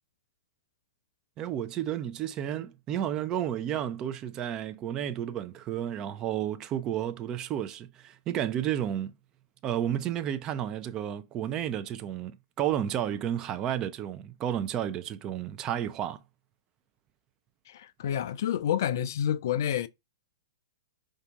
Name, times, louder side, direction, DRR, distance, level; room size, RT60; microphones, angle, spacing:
voice 1, 1.4-9.1 9.6-16.2, right 10 dB, 30° right, 0.5 m, -32 dB
voice 2, 17.7-19.9, left 10 dB, 55° left, 0.4 m, -29 dB
5.0 x 2.6 x 3.5 m
figure-of-eight pair, 110°, 2 cm